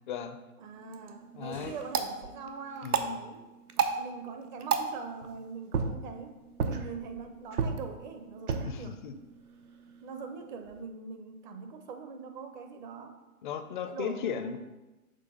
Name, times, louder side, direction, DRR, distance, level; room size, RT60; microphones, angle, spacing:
voice 1, 0.1-0.4 1.3-1.8 2.8-3.2 8.7-9.1 13.4-14.6, left 7 dB, 35° left, 9 dB, 0.4 m, -36 dB
voice 2, 0.6-3.4 3.8-6.3 6.6-9.0 10.0-13.2 13.9-14.6, right 5 dB, 35° right, 6 dB, 0.6 m, -42 dB
sound 1, 0.7-10.8, right 6 dB, 90° right, 0.8 m, -35 dB
sound 2, 1.4-2.7, right 3 dB, 65° right, 1.6 m, -52 dB
6.7 x 3.3 x 5.2 m, 1.1 s
hypercardioid pair, 125°, 44 cm